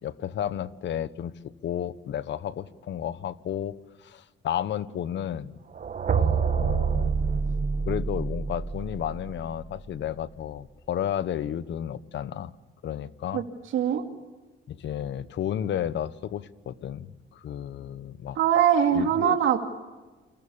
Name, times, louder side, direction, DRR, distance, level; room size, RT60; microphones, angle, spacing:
voice 1, 0.0-1.3 1.6-5.5 6.1-7.1 7.8-12.5 12.8-13.4 14.7-18.4 18.9-19.4, left 10 dB, 65° left, 15 dB, 1.2 m, -32 dB
sound 1, 5.7-9.7, right 6 dB, 40° right, 1.3 m, -27 dB
voice 2, 13.7-14.0 18.4-19.6, right 9 dB, 80° right, 4 dB, 2.6 m, -22 dB
29.5 x 25.5 x 7.1 m, 1.2 s
cardioid pair, 90°, 20 cm